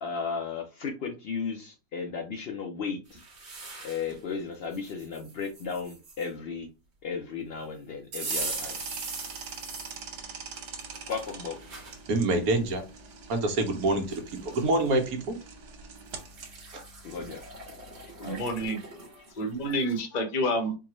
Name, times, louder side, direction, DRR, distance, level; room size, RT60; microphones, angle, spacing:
voice 1, 0.0-3.2 3.8-6.7 7.0-8.8 11.1-11.6 17.0-17.4 18.2-18.4, left 5 dB, 75° left, 2 dB, 0.5 m, -35 dB
sound 1, 3.1-4.2 4.7-6.3 8.1-10.0 10.5-12.0 12.6-12.7 13.7-13.8 14.1-14.7 16.0-20.0, right 3 dB, 45° right, 1.3 m, -40 dB
sound 2, 8.3-18.7, right 5 dB, 90° right, 1.5 m, -44 dB
voice 2, 12.1-12.8 13.3-15.4 16.7-16.8, right 2 dB, 65° right, 5 dB, 1.3 m, -26 dB
voice 3, 18.2-18.8 19.1-20.7, equal, 35° left, 4 dB, 0.7 m, -29 dB
4.5 x 2.3 x 2.9 m, 0.29 s
omnidirectional pair, 1.7 m